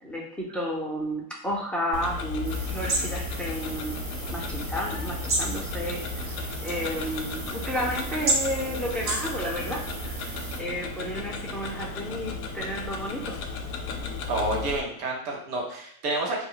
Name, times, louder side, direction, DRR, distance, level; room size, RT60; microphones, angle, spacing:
voice 1, 0.0-4.0 4.3-13.4, equal, ahead, -3 dB, 0.6 m, -32 dB
Tick-tock, 1.9-14.8, left 4 dB, 60° left, 0.6 m, -35 dB
sound 1, 2.3-14.8, right 6 dB, 60° right, 0.6 m, -47 dB
sound 2, 2.4-10.6, right 2 dB, 30° right, 0.9 m, -32 dB
voice 2, 14.3-16.4, right 2 dB, 90° right, 0 dB, 0.9 m, -29 dB
2.2 x 2.2 x 3.8 m, 0.69 s
supercardioid pair, 95°, 44 cm